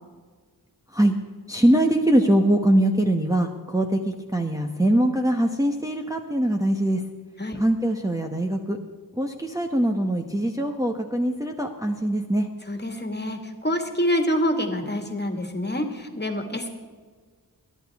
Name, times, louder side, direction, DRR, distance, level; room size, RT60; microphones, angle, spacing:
voice 1, 1.5-7.0 7.5-8.8 9.1-12.5, right 1 dB, 10° right, 1 dB, 1.1 m, -22 dB
voice 2, 12.7-16.7, equal, 25° left, 4 dB, 2.0 m, -26 dB
22.0 x 11.0 x 3.6 m, 1.5 s
wide cardioid pair, 60°, 38 cm